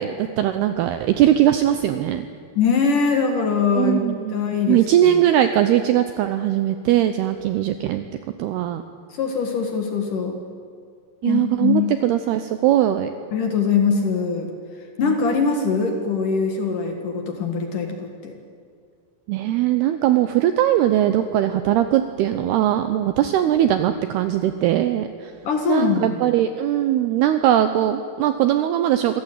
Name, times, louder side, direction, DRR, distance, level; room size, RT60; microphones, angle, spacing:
voice 1, 0.0-2.3 3.7-4.3 4.7-8.0 8.4-8.8 11.2-13.1 15.0-15.1 19.3-25.3 25.7-29.2, right 12 dB, 80° right, 9 dB, 2.4 m, -20 dB
voice 2, 2.6-5.1 9.1-10.4 11.2-11.9 13.3-14.5 15.0-18.3 25.4-26.2, left 5 dB, 55° left, 4 dB, 2.5 m, -22 dB
26.0 x 16.5 x 9.1 m, 2.2 s
omnidirectional pair, 5.5 m